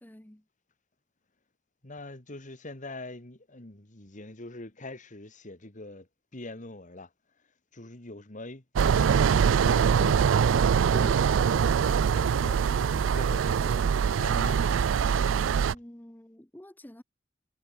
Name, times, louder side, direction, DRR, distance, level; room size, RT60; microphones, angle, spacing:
voice 1, 0.0-0.4 15.7-17.0, left 1 dB, 10° left, 0.9 m, -49 dB
voice 2, 1.8-7.1 7.7-10.3 10.9-13.9 14.1-14.7, left 2 dB, 40° left, 2.3 m, -43 dB
sound 1, 8.8-15.7, right 7 dB, 80° right, 0.4 m, -23 dB
head